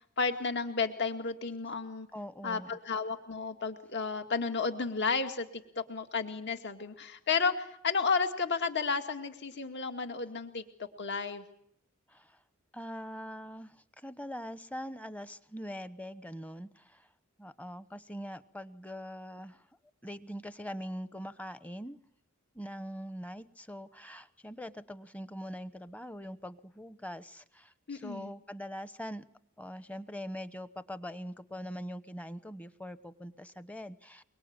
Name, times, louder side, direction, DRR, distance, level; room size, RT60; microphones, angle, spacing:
voice 1, 0.2-2.1 2.4-10.6 11.0-11.4 27.9-28.3, left 5 dB, 55° left, 6 dB, 2.2 m, -32 dB
voice 2, 2.1-2.7 12.1-12.4 12.7-17.1 17.4-19.7 20.0-22.0 22.5-29.2 29.6-34.2, equal, 5° left, 13 dB, 1.0 m, -43 dB
24.0 x 23.5 x 8.9 m, 0.70 s
head